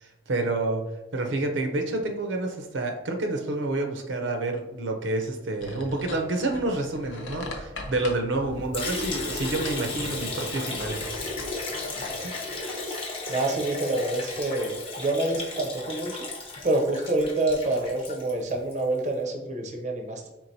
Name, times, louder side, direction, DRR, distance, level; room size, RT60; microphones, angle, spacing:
voice 1, 0.0-0.8 1.1-11.0 12.2-12.4, right 2 dB, 80° right, 4 dB, 0.6 m, -29 dB
sound 1, 5.6-12.6, left 2 dB, 80° left, 0.7 m, -40 dB
Liquid, 8.7-18.8, left 2 dB, 30° left, 0.6 m, -34 dB
voice 2, 13.3-16.3 16.6-20.3, right 2 dB, 40° right, 2 dB, 0.5 m, -27 dB
4.5 x 3.6 x 2.7 m, 1.0 s
head